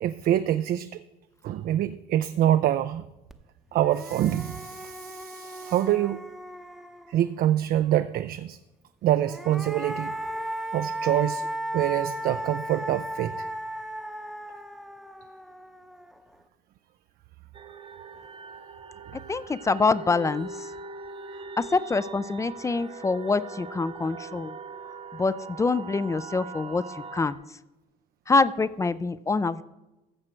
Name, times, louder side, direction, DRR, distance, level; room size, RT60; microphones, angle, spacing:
voice 1, 0.0-0.9 1.4-3.0 3.7-6.2 7.1-8.6 9.0-10.1 10.7-11.5 11.7-13.5, right 12 dB, 60° right, 0.4 m, -25 dB
sound 1, 3.3-3.4 3.7-7.4 9.1-16.3, right 1 dB, ahead, 0.7 m, -36 dB
sound 2, 17.5-27.3, right 4 dB, 35° right, 0.8 m, -41 dB
voice 2, 19.3-20.5 21.6-24.5 25.2-26.8 27.1-27.4 28.3-29.6, left 3 dB, 20° left, 0.4 m, -25 dB
15.0 x 6.3 x 4.4 m
cardioid pair, 110°, 17 cm